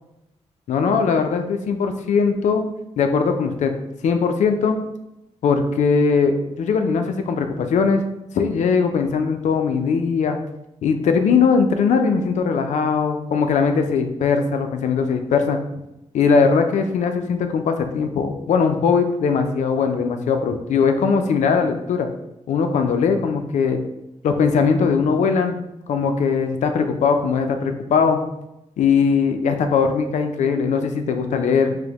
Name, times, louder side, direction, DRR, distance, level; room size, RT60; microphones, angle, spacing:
voice 1, 0.7-2.6 3.0-3.7 4.0-4.8 5.4-8.0 8.3-10.4 10.8-15.6 16.1-22.1 22.5-23.8 24.2-25.6 25.9-28.2 28.8-31.8, left 5 dB, 85° left, 6 dB, 0.4 m, -20 dB
4.8 x 2.0 x 2.9 m, 0.90 s
cardioid pair, 95°, 12 cm